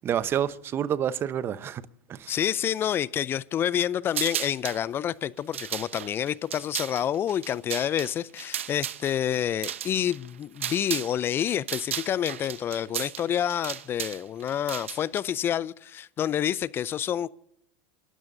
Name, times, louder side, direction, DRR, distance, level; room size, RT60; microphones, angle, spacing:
voice 1, 0.0-1.8 2.1-2.3, right 9 dB, 35° right, 0.9 m, -28 dB
voice 2, 2.3-17.3, left 10 dB, 35° left, 0.5 m, -28 dB
sound 1, 4.1-4.8 5.4-11.2 11.4-15.2, right 10 dB, 85° right, 0.8 m, -35 dB
29.0 x 12.5 x 2.6 m
hypercardioid pair, 95°, 7 cm